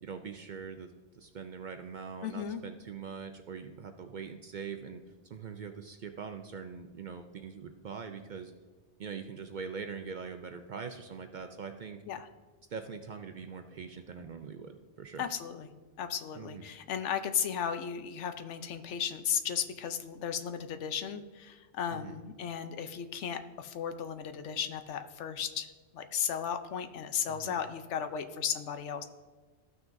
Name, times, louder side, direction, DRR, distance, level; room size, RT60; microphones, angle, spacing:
voice 1, 0.0-5.0 5.3-8.5 9.0-12.0 12.7-15.2 16.4-16.6 21.9-22.2 27.3-27.6, right 6 dB, 55° right, 6 dB, 0.5 m, -42 dB
voice 2, 2.2-2.6 12.1-12.3 15.2-15.7 16.0-29.0, left 8 dB, 80° left, 9 dB, 1.0 m, -35 dB
14.0 x 6.0 x 2.6 m, 1.3 s
omnidirectional pair, 1.2 m